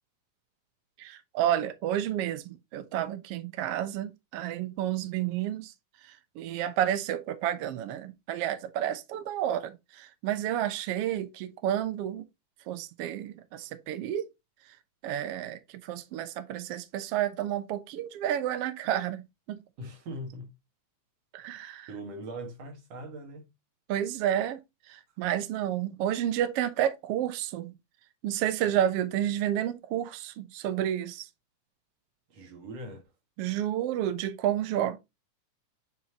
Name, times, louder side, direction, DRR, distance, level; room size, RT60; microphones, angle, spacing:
voice 1, 1.0-5.7 6.1-12.2 12.7-14.3 15.0-19.6 21.3-21.9 23.9-24.6 24.9-27.7 28.2-31.3 33.4-35.0, right 11 dB, 85° right, 1.3 m, -30 dB
voice 2, 19.8-20.5 21.9-23.5 32.3-33.0, right 1 dB, 55° right, 2.7 m, -41 dB
9.0 x 4.4 x 2.9 m
omnidirectional pair, 3.9 m